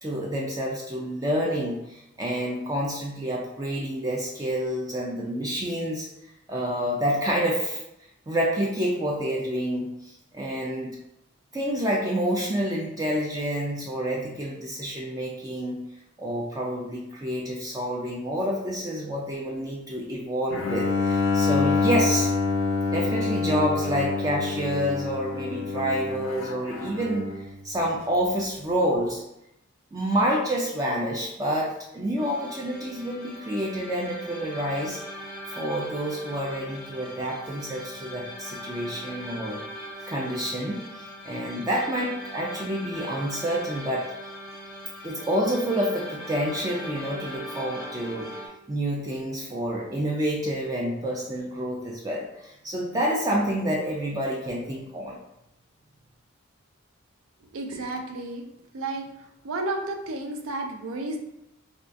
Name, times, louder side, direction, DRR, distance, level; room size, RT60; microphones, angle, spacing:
voice 1, 0.0-6.1 6.5-7.8 8.3-11.0 11.5-15.8 16.2-22.3 22.9-27.4 27.6-29.2 29.9-35.0 35.6-39.6 40.1-40.9 41.2-44.1 45.0-48.3 48.7-55.2, equal, 20° right, -2 dB, 0.3 m, -28 dB
Bowed string instrument, 20.5-27.5, left 4 dB, 70° left, 0.4 m, -26 dB
sound 1, 32.2-48.5, equal, ahead, 0.7 m, -40 dB
voice 2, 57.5-58.5 58.7-59.1 59.4-61.2, right 2 dB, 80° right, 3 dB, 0.5 m, -32 dB
3.6 x 2.3 x 2.5 m, 0.83 s
head